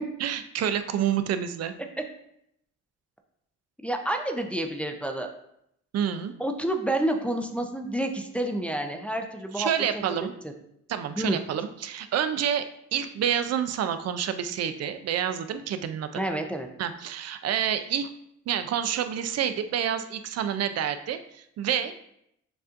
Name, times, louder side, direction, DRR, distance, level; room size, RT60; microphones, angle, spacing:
voice 1, 0.2-1.8 5.9-6.3 9.5-10.3 10.9-16.2 16.8-18.1 18.5-21.9, right 9 dB, 55° right, 10 dB, 0.5 m, -28 dB
voice 2, 3.8-5.3 6.4-9.7 10.4-10.5 11.2-11.4 16.1-16.7, right 1 dB, 5° left, 3 dB, 0.4 m, -29 dB
6.7 x 2.6 x 2.5 m, 0.76 s
cardioid pair, 90°, 30 cm